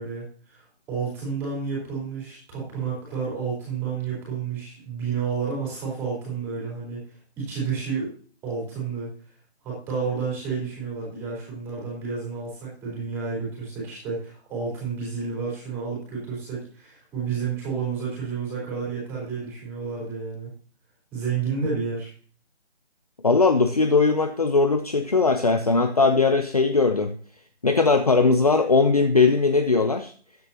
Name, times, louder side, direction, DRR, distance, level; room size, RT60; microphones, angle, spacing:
voice 1, 0.0-7.0 7.4-8.1 8.4-9.1 9.6-20.5 21.1-22.1, right 5 dB, 5° right, -5 dB, 4.0 m, -30 dB
voice 2, 23.2-27.1 27.6-30.1, left 4 dB, 35° left, 8 dB, 0.7 m, -19 dB
14.0 x 10.0 x 2.9 m, 0.43 s
figure-of-eight pair, 170°, 33 cm